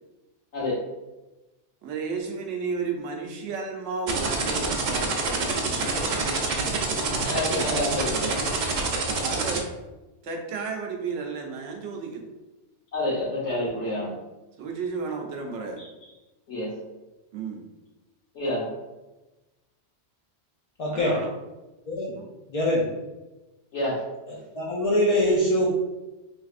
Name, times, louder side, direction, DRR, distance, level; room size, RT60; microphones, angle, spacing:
voice 1, 1.8-6.3 9.2-9.7 10.2-12.3 14.6-15.8 17.3-17.7 20.9-21.3, right 4 dB, 85° right, 2 dB, 1.0 m, -33 dB
sound 1, 4.1-9.6, right 4 dB, 55° right, 0.5 m, -26 dB
voice 2, 6.0-6.5 7.2-8.3 12.9-14.1 15.8-15.9 16.5-16.7 18.3-18.7 23.7-24.0, left 1 dB, 75° left, -7 dB, 1.3 m, -28 dB
voice 3, 20.8-21.2 21.9-22.2 22.5-22.9 24.5-25.7, left 1 dB, 50° left, -5 dB, 0.4 m, -23 dB
3.3 x 3.2 x 2.4 m, 1.1 s
omnidirectional pair, 1.2 m